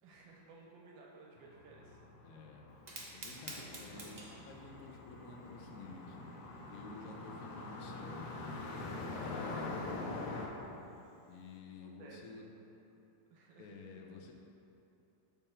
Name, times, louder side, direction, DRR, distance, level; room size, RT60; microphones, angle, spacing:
voice 1, 0.0-2.3 11.8-12.2 12.9-13.0 13.3-13.7, right 4 dB, 85° right, -1 dB, 1.5 m, -57 dB
sound 1, 1.4-10.5, left 3 dB, 90° left, 1.5 m, -45 dB
voice 2, 2.2-2.6 3.1-6.4 6.7-10.3 11.3-12.4 13.6-14.3, left 3 dB, 65° left, 0 dB, 1.0 m, -51 dB
Fire, 2.7-11.6, right 2 dB, 60° right, 0.4 m, -54 dB
7.0 x 3.6 x 4.4 m, 2.8 s
omnidirectional pair, 2.0 m